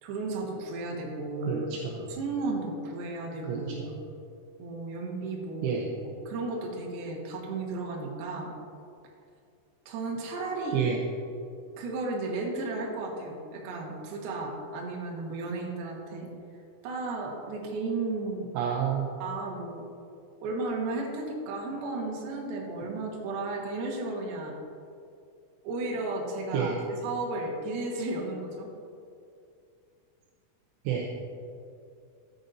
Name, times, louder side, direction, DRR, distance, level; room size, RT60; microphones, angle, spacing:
voice 1, 0.0-1.7 2.1-4.0 4.6-5.8 6.3-8.5 9.9-10.8 11.8-16.3 16.8-18.5 19.2-19.8 20.4-24.6 25.6-28.7, right 3 dB, 65° right, -2 dB, 2.7 m, -34 dB
voice 2, 1.4-2.1 3.4-3.9 5.6-5.9 10.7-11.0 18.6-19.1 26.5-26.8 30.9-31.1, right 7 dB, 80° right, -1 dB, 3.0 m, -29 dB
13.5 x 9.1 x 2.7 m, 2.5 s
omnidirectional pair, 6.0 m